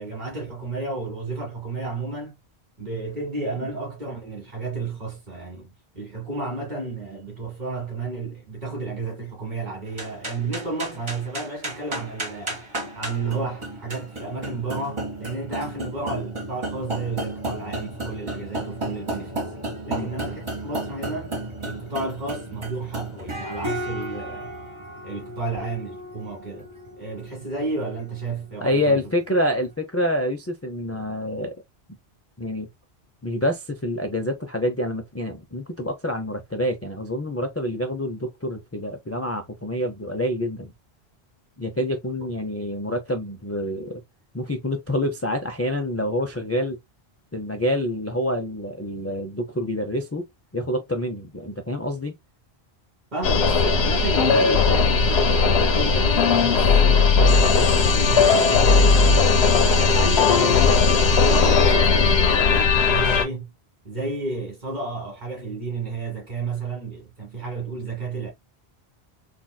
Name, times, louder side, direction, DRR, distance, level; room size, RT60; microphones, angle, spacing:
voice 1, 0.0-2.4 2.8-12.6 13.0-19.4 19.8-24.5 25.0-26.7 27.0-29.0 53.1-59.3 59.7-63.5 63.8-68.3, right 3 dB, 45° right, 2.1 m, -32 dB
sound 1, 9.9-29.4, right 1 dB, 30° right, 1.1 m, -34 dB
voice 2, 28.6-31.5 32.4-32.7 33.2-40.7 41.6-44.0 44.3-46.8 47.3-50.2 50.5-52.1, left 1 dB, 25° left, 0.3 m, -27 dB
sound 2, 53.2-63.2, left 4 dB, 85° left, 1.0 m, -17 dB
3.9 x 2.5 x 2.2 m
omnidirectional pair, 1.1 m